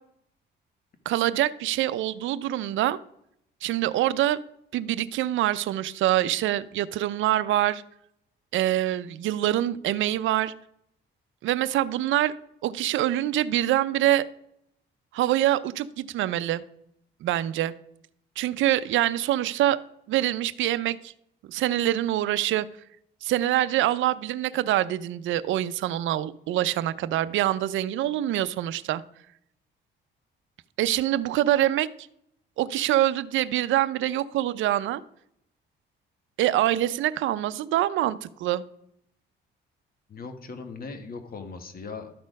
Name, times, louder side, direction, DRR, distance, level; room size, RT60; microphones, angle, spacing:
voice 1, 1.1-3.0 3.6-4.4 4.7-7.8 8.5-10.5 11.4-12.3 12.6-14.3 15.1-16.6 17.2-17.7 18.4-19.8 20.1-21.1 21.5-22.7 23.2-29.0 30.8-31.9 32.6-35.0 36.4-38.6, right 13 dB, 75° right, 15 dB, 0.5 m, -25 dB
voice 2, 40.1-42.1, left 4 dB, 50° left, 7 dB, 1.4 m, -39 dB
12.5 x 4.2 x 5.2 m, 0.76 s
cardioid pair, 90°, 20 cm